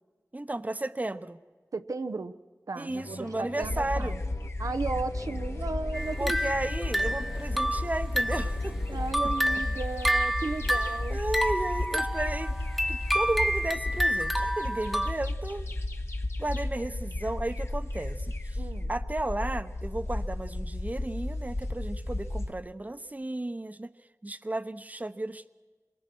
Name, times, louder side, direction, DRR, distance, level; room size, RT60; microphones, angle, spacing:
voice 1, 0.3-1.4 2.8-4.2 6.2-9.0 10.7-10.8 11.1-12.6 12.9-15.7 16.4-18.6 18.9-23.9 24.2-25.6, right 2 dB, 30° right, 11 dB, 0.9 m, -34 dB
voice 2, 1.7-2.3 2.7-4.2 4.6-6.5 8.9-11.2 18.6-18.9, right 3 dB, 90° right, 9 dB, 0.9 m, -35 dB
sound 1, 2.9-9.6, left 3 dB, 75° left, 1.5 m, -46 dB
sound 2, 3.6-22.5, left 1 dB, 50° left, 1.7 m, -33 dB
sound 3, 5.9-8.6 9.0-15.1, equal, ahead, 1.2 m, -29 dB
26.5 x 23.5 x 6.2 m, 1.4 s
wide cardioid pair, 55°, 6 cm